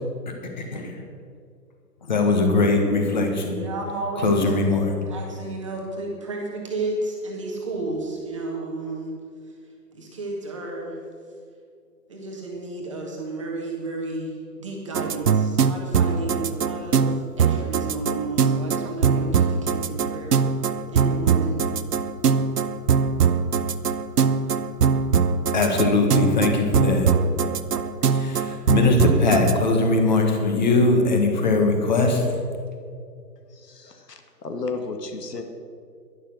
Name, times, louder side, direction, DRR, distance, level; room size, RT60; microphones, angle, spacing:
voice 1, 0.3-0.9 2.1-3.5 4.2-4.9 25.5-27.1 28.1-32.2, left 3 dB, 25° left, 3 dB, 1.5 m, -21 dB
voice 2, 3.5-4.4 5.1-9.1 9.5-9.6 9.9-11.0 12.1-20.4 20.9-21.6, right 2 dB, 20° right, -2 dB, 1.3 m, -32 dB
sound 1, 14.9-29.5, right 6 dB, 70° right, 0.9 m, -22 dB
voice 3, 33.5-35.4, left 3 dB, 70° left, 5 dB, 1.9 m, -33 dB
11.5 x 11.0 x 6.3 m, 2.2 s
hypercardioid pair, 170°, 50 cm